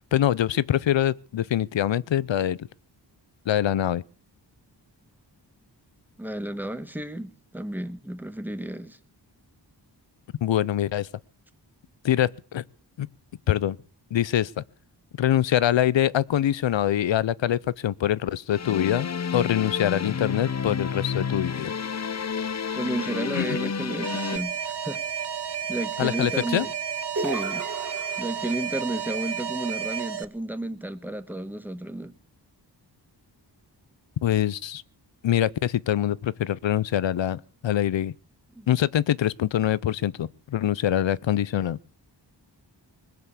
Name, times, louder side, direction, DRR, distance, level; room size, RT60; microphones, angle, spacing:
voice 1, 0.1-2.7 3.5-4.0 10.4-11.1 12.0-12.6 13.0-13.1 13.5-13.8 14.1-14.6 15.2-21.7 23.3-23.6 26.0-26.7 34.2-34.8 35.2-38.1 38.7-41.8, left 11 dB, 90° left, 0.6 m, -24 dB
voice 2, 6.2-9.0 22.7-24.6 24.8-25.0 25.7-26.7 27.1-27.7 28.2-32.1 38.5-38.7, right 1 dB, 5° right, 1.2 m, -32 dB
sound 1, 18.5-24.4, left 6 dB, 40° left, 0.6 m, -30 dB
Alarm, 24.0-30.2, right 8 dB, 65° right, 0.8 m, -32 dB
sound 2, 27.2-28.7, right 3 dB, 45° right, 2.5 m, -34 dB
20.5 x 7.0 x 8.3 m
wide cardioid pair, 75°, 43 cm